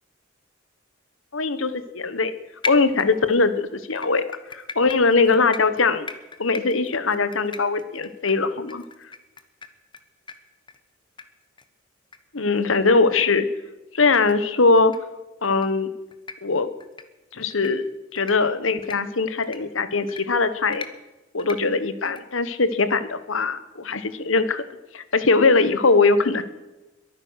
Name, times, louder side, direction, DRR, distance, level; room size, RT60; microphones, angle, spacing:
voice 1, 1.3-2.3 2.7-4.2 4.5-6.1 6.4-8.8 12.3-13.5 13.9-14.9 15.4-15.9 16.4-16.7 17.3-17.9 18.1-20.9 21.3-24.6 24.9-26.4, left 3 dB, 75° left, 12 dB, 1.2 m, -21 dB
sound 1, 2.6-3.5 4.0-10.0 10.3-10.4 10.7-10.8 11.2-11.3 11.6-11.7 12.1-12.2 12.6-12.7 13.1-13.2 14.2-14.3 14.8-15.0 15.4-15.7 16.1-16.4 16.8-17.0 17.5-17.7 18.2-18.3 18.8-19.0 19.4-19.6 20.1-20.2 20.7-20.9 21.4-21.6 22.1-22.2, left 4 dB, 25° left, 1.1 m, -36 dB
22.0 x 9.9 x 6.4 m, 1.1 s
head